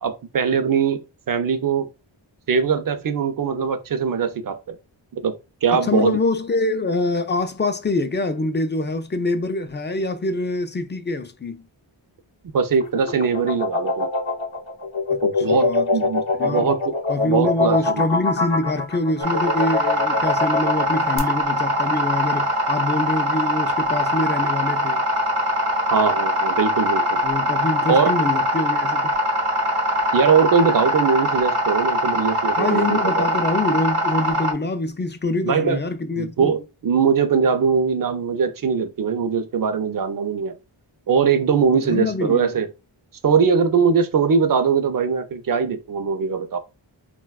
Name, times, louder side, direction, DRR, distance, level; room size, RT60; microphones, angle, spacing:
voice 1, 0.0-1.9 2.5-4.8 5.1-5.3 5.6-6.2 12.5-14.1 15.2-16.9 17.2-18.1 25.9-27.2 27.9-28.1 30.1-33.3 35.4-35.8 36.2-40.5 41.1-42.7 43.2-46.6, right 6 dB, 45° right, 0.5 m, -21 dB
voice 2, 5.8-11.6 15.1-15.9 16.4-16.7 17.1-25.0 27.2-29.1 32.6-36.5 41.7-42.5, left 2 dB, 25° left, 0.3 m, -25 dB
sound 1, 12.7-21.2, left 3 dB, 70° left, 0.7 m, -23 dB
sound 2, 19.2-34.5, equal, 90° right, 0.8 m, -22 dB
3.9 x 2.2 x 2.3 m
wide cardioid pair, 60°, 49 cm